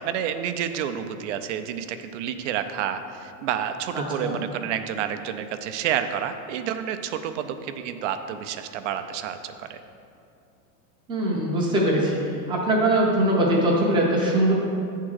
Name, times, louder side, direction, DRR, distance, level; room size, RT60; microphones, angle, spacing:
voice 1, 0.0-9.8, right 9 dB, 55° right, 9 dB, 0.5 m, -29 dB
voice 2, 3.9-4.4 11.1-14.5, right 1 dB, 10° right, -4 dB, 0.6 m, -22 dB
8.6 x 3.7 x 6.3 m, 2.6 s
supercardioid pair, 170°, 45 cm